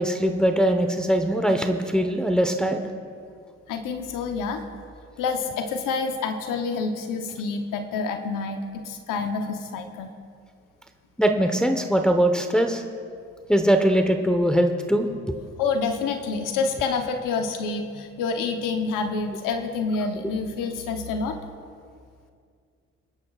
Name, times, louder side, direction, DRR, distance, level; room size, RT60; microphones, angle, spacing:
voice 1, 0.0-2.8 11.2-12.8 13.5-15.4, right 1 dB, ahead, 5 dB, 1.1 m, -21 dB
voice 2, 3.7-4.6 5.2-10.1 15.6-21.4, left 4 dB, 85° left, 6 dB, 1.0 m, -28 dB
28.5 x 10.5 x 2.4 m, 2.2 s
supercardioid pair, 55°, 31 cm